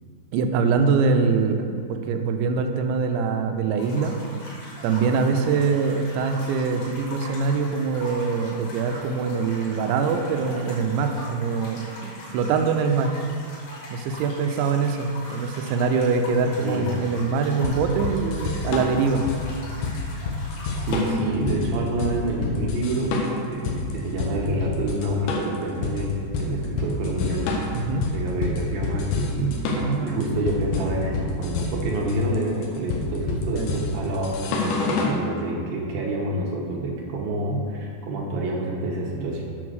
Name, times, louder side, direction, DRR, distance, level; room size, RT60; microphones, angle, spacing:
voice 1, 0.3-4.2 4.8-13.1 13.9-19.3 27.7-28.1 29.8-30.2 33.5-33.8, right 5 dB, 85° right, 6 dB, 3.0 m, -23 dB
sound 1, 3.8-21.1, left 1 dB, 65° left, 4.2 m, -41 dB
sound 2, 17.6-35.2, left 3 dB, 85° left, 3.4 m, -28 dB
voice 2, 20.8-23.2 23.5-39.4, right 1 dB, 70° right, -2 dB, 2.4 m, -27 dB
8.7 x 6.0 x 6.3 m, 2.2 s
omnidirectional pair, 5.1 m